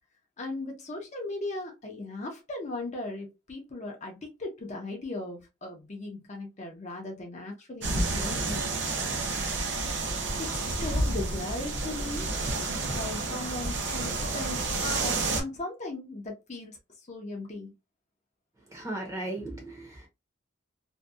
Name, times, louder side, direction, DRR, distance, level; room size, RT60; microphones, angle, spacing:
voice 1, 0.4-9.4 10.4-12.3 12.9-17.7, left 2 dB, 35° left, 0.6 m, -38 dB
sound 1, 7.8-15.4, right 2 dB, 55° right, 0.6 m, -30 dB
voice 2, 18.7-20.1, right 2 dB, 15° right, 0.7 m, -36 dB
2.6 x 2.2 x 2.2 m
head